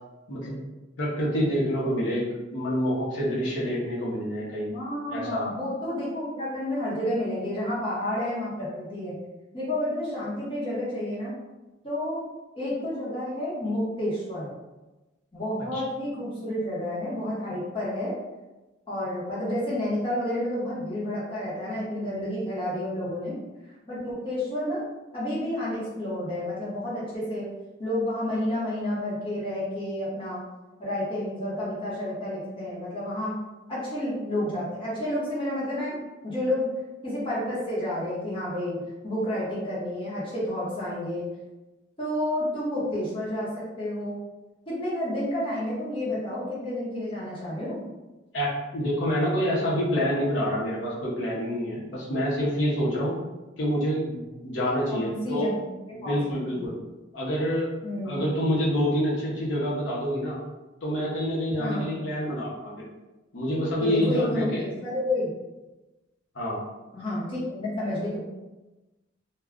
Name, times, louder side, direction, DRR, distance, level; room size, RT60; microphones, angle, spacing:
voice 1, 1.0-4.7 5.1-5.4 15.7-15.8 48.3-53.2 53.6-55.5 55.9-56.7 57.1-57.7 58.0-60.4 60.8-62.7 63.3-64.7 66.3-66.6, equal, 70° left, -6 dB, 0.8 m, -27 dB
voice 2, 4.7-9.2 9.5-11.3 11.8-12.2 12.5-14.5 15.3-18.1 18.9-23.4 23.9-24.8 25.1-27.5 27.8-30.4 30.8-33.3 33.7-36.0 36.2-36.7 37.0-41.2 42.0-44.2 44.7-47.8 54.9-56.8 57.8-58.2 61.6-62.0 63.8-65.3 66.9-68.2, left 1 dB, 25° left, -8 dB, 0.9 m, -30 dB
2.2 x 2.2 x 3.6 m, 1.1 s
head